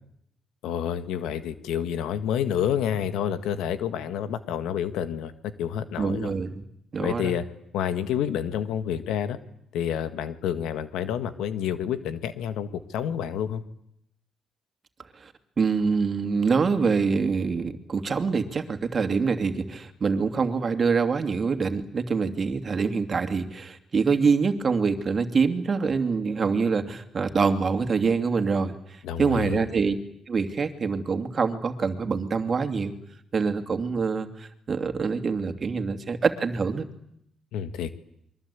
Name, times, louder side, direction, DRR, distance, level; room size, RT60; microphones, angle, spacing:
voice 1, 0.6-6.3 7.0-7.4 7.7-9.4 9.7-13.6 29.0-29.7 37.5-37.9, left 9 dB, 90° left, 10 dB, 1.8 m, -29 dB
voice 2, 6.0-6.6 6.9-7.3 15.2-15.3 15.6-29.9 30.3-32.9 33.3-36.8, right 5 dB, 40° right, 7 dB, 2.7 m, -25 dB
29.0 x 23.5 x 8.5 m, 0.75 s
cardioid pair, 90°, 0 cm